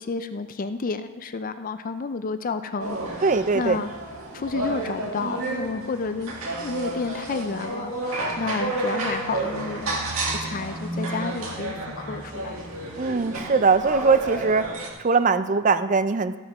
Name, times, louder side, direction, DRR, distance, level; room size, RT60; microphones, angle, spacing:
voice 1, 0.0-3.3 3.5-3.9 4.3-12.6, left 4 dB, 40° left, 10 dB, 0.4 m, -31 dB
sound 1, 2.8-14.9, right 2 dB, 65° right, 2.0 m, -31 dB
voice 2, 3.2-3.8 13.0-14.7 15.0-16.4, right 4 dB, 35° right, 12 dB, 0.4 m, -21 dB
15.0 x 6.5 x 5.9 m, 1.3 s
head